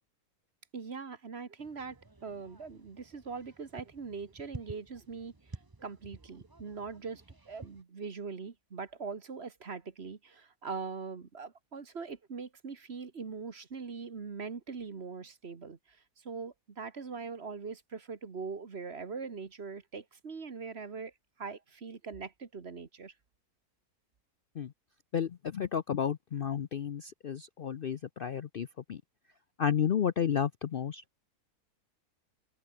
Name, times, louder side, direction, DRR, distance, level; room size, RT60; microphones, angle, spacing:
voice 1, 0.7-5.3 5.8-21.1 21.4-23.1, right 5 dB, 40° right, 1.7 m, -42 dB
sound 1, 1.6-7.8, right 2 dB, 15° right, 1.0 m, -51 dB
voice 2, 25.1-29.0 29.6-31.0, left 8 dB, 65° left, 0.5 m, -32 dB
omnidirectional pair, 1.7 m